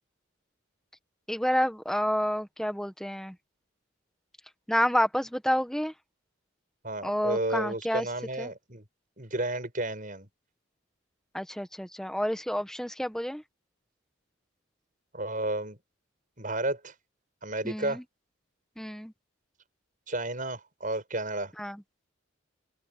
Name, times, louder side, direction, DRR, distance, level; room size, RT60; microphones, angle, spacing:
voice 1, 1.3-3.3 4.7-5.9 7.0-8.1 8.4-8.5 11.3-13.4 17.6-18.0 18.8-19.1 21.6-21.8, equal, 5° left, 1.4 m, -29 dB
voice 2, 6.8-8.8 9.2-10.3 15.1-15.8 16.4-16.9 17.4-18.0 20.1-21.5, right 2 dB, 40° right, 7.0 m, -32 dB
open air
head